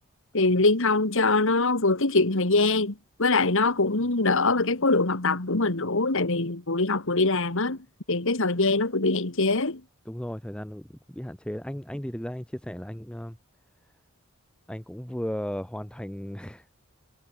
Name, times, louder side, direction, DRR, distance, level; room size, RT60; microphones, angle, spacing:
voice 1, 0.3-7.8 8.1-9.8, left 3 dB, 65° left, 2.2 m, -23 dB
voice 2, 10.1-13.4 14.7-16.7, equal, 5° left, 1.1 m, -35 dB
head